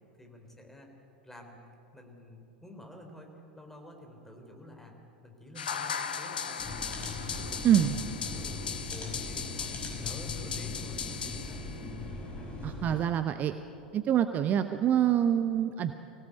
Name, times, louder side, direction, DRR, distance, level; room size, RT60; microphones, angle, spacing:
voice 1, 0.2-0.9 1.2-1.6 1.9-5.0 5.2-7.0 7.3-8.6 8.9-11.6, left 1 dB, 5° left, 2 dB, 4.0 m, -50 dB
sound 1, 5.6-12.0, left 7 dB, 70° left, 1.2 m, -37 dB
sound 2, 6.6-13.0, left 2 dB, 25° left, 5.6 m, -39 dB
voice 2, 12.6-13.5 13.9-15.9, right 10 dB, 35° right, 10 dB, 0.8 m, -25 dB
24.5 x 17.5 x 8.5 m, 2.7 s
figure-of-eight pair, 80°, 5 cm